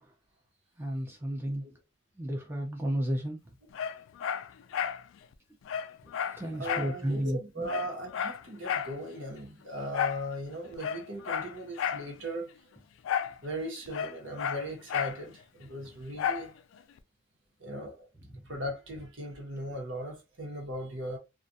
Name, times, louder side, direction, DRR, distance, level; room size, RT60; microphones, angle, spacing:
voice 1, 0.8-1.6 2.2-3.4 6.4-7.7 18.3-18.4, equal, 10° right, 0.5 m, -32 dB
Dog, 3.7-5.0 5.3-5.4 5.7-7.0 7.3-7.4 7.7-9.0 9.9-10.3 10.7-12.1 13.0-13.4 13.6-15.2 16.2-16.5 17.0-17.1, left 8 dB, 85° left, 0.3 m, -32 dB
voice 2, 6.6-12.5 13.4-16.5 17.6-18.1 18.5-21.2, equal, 75° right, 1.0 m, -38 dB
2.4 x 2.2 x 2.6 m
head